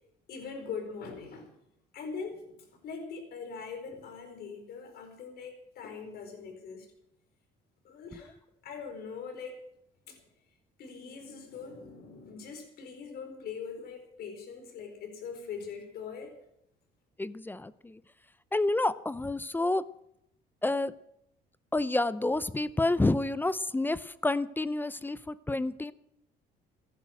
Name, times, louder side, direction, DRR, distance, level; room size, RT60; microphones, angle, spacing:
voice 1, 0.3-1.5 1.9-6.9 7.8-8.4 8.6-9.6 10.1-10.2 10.8-16.3, left 5 dB, 65° left, 5 dB, 4.6 m, -42 dB
voice 2, 17.2-18.0 18.5-19.8 20.6-20.9 21.7-25.9, left 2 dB, 10° left, 17 dB, 0.6 m, -29 dB
15.0 x 10.5 x 7.9 m, 0.80 s
cardioid pair, 110°, 17 cm